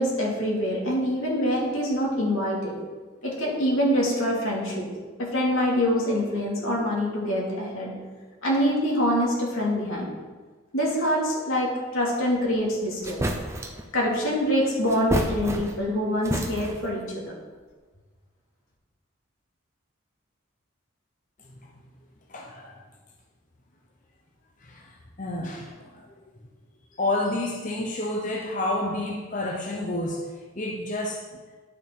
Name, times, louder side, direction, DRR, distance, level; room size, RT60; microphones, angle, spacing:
voice 1, 0.0-2.7 3.2-4.9 5.2-7.9 8.4-10.1 10.7-13.2 13.9-17.3, equal, 80° left, -3 dB, 2.6 m, -25 dB
sound 1, 12.6-12.7 13.0-13.9 14.9-15.9 16.2-16.9, right 1 dB, 15° right, 0.6 m, -29 dB
voice 2, 22.3-22.8 24.6-26.1 26.9-30.3 30.5-31.4, left 2 dB, 40° left, -1 dB, 0.8 m, -30 dB
11.0 x 5.7 x 4.6 m, 1.4 s
head